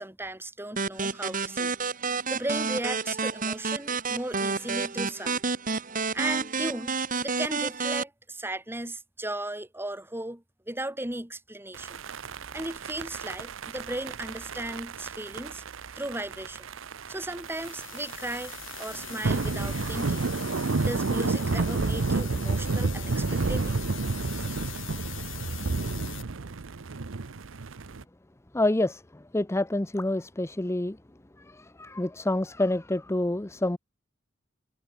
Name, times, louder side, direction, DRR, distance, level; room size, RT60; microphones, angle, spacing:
voice 1, 0.0-1.7 2.3-5.4 6.1-12.0 12.5-15.6 15.9-16.7 17.1-20.2 20.9-23.8, right 1 dB, 10° right, 3.2 m, -36 dB
sound 1, 0.8-8.0, right 4 dB, 45° right, 2.7 m, -30 dB
sound 2, 11.7-28.0, right 3 dB, 75° right, 0.8 m, -31 dB
sound 3, 17.4-26.2, left 13 dB, 70° left, 3.6 m, -42 dB
voice 2, 28.5-31.0 31.5-33.8, left 1 dB, 15° left, 0.6 m, -28 dB
head